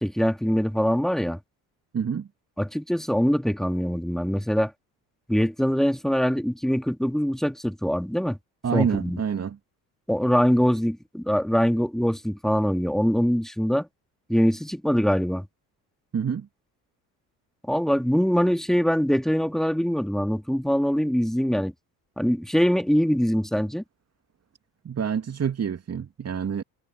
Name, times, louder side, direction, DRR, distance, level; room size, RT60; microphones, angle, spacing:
voice 1, 0.0-1.4 2.6-4.7 5.3-8.4 8.7-9.2 10.1-13.9 14.3-15.5 17.7-21.7 22.2-23.8, equal, ahead, 3.5 m, -23 dB
voice 2, 1.9-2.3 8.6-9.6 16.1-16.5 24.8-26.6, right 7 dB, 30° right, 2.6 m, -27 dB
figure-of-eight pair, 55°, 49 cm